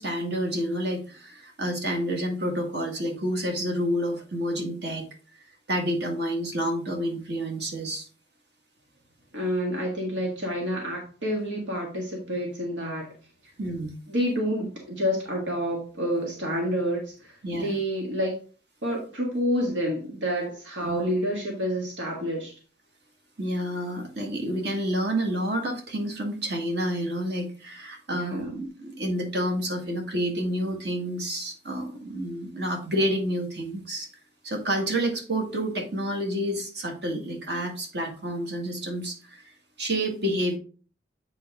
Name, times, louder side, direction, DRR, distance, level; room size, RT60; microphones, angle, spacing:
voice 1, 0.0-5.1 5.7-8.1 13.6-13.9 17.4-17.8 20.8-21.0 23.4-34.1 34.4-39.4 39.8-40.6, equal, 60° right, 2 dB, 1.8 m, -29 dB
voice 2, 9.3-13.1 14.1-18.3 18.8-22.5 28.1-28.6, equal, 90° right, -1 dB, 1.6 m, -28 dB
8.3 x 4.3 x 3.6 m, 0.38 s
head